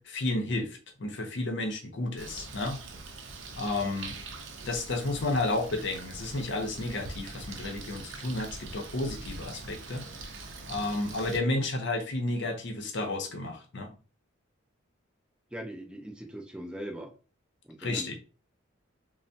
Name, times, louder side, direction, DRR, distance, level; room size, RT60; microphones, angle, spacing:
voice 1, 0.0-2.8 3.6-4.2 4.7-10.0 10.7-13.9 17.8-18.2, left 2 dB, 60° left, 0.6 m, -32 dB
Bird, 2.2-11.4, right 3 dB, 60° right, 0.5 m, -43 dB
voice 2, 15.5-17.1 17.6-18.2, equal, 5° right, 0.4 m, -40 dB
3.3 x 2.0 x 2.6 m
head